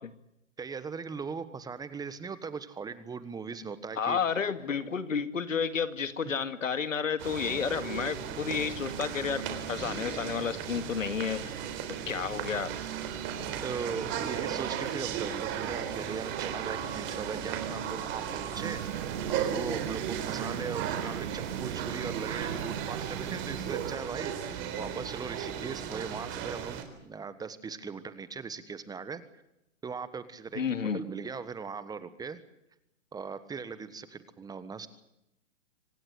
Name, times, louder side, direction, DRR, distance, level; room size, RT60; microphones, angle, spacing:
voice 1, 0.6-4.2 6.2-6.3 13.6-26.8 27.0-29.2 29.8-30.6 30.9-32.4 33.1-34.9, right 5 dB, 10° right, 14 dB, 1.3 m, -39 dB
voice 2, 4.0-11.5 12.1-12.7 30.5-31.0, left 6 dB, 85° left, 12 dB, 2.2 m, -31 dB
sound 1, 7.2-26.8, right 8 dB, 30° right, 3.9 m, -35 dB
sound 2, 18.5-24.0, right 10 dB, 60° right, 1.8 m, -39 dB
25.5 x 18.5 x 8.1 m, 0.84 s
hypercardioid pair, 130°, 38 cm